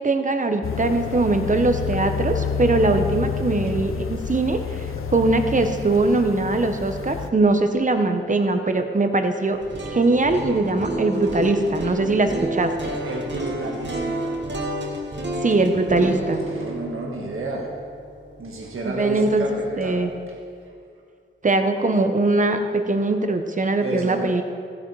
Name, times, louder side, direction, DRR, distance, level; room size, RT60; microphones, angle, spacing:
voice 1, 0.0-4.9 5.1-9.6 9.9-12.9 15.4-16.4 18.8-20.1 21.4-24.4, right 2 dB, 40° right, 7 dB, 1.0 m, -21 dB
sound 1, 0.6-7.3, left 6 dB, 90° left, 0.6 m, -29 dB
sound 2, 9.5-19.6, right 1 dB, 60° right, 1.7 m, -31 dB
voice 2, 10.9-11.8 12.6-12.7 13.0-14.2 16.0-16.1 16.5-17.7 18.4-20.0 23.8-24.3, right 2 dB, 90° right, -1 dB, 1.5 m, -31 dB
15.5 x 8.7 x 4.7 m, 2.2 s
wide cardioid pair, 110°, 21 cm